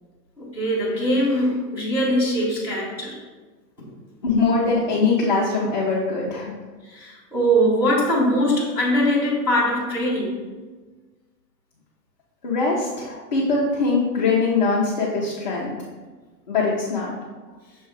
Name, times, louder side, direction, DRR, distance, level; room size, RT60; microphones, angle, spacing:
voice 1, 0.4-3.2 3.8-3.9 6.8-10.4 13.1-13.2, equal, 5° right, -10 dB, 1.3 m, -22 dB
voice 2, 4.2-6.5 12.4-15.7 16.5-17.1, left 3 dB, 30° left, -6 dB, 0.4 m, -22 dB
6.5 x 3.1 x 4.6 m, 1.3 s
hypercardioid pair, 175°, 50 cm